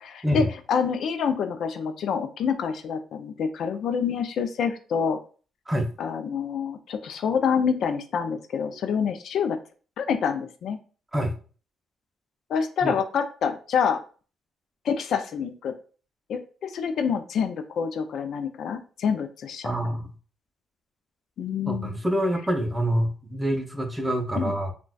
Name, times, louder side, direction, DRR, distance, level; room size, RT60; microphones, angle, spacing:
voice 1, 0.0-5.2 6.0-9.6 10.0-10.8 12.5-14.0 14.8-15.7 16.3-19.7 21.4-22.0 24.4-24.5, left 6 dB, 70° left, 8 dB, 0.4 m, -27 dB
voice 2, 19.6-20.1 21.7-24.7, equal, 10° right, 4 dB, 0.6 m, -26 dB
3.8 x 2.2 x 2.3 m, 0.38 s
cardioid pair, 90°, 0 cm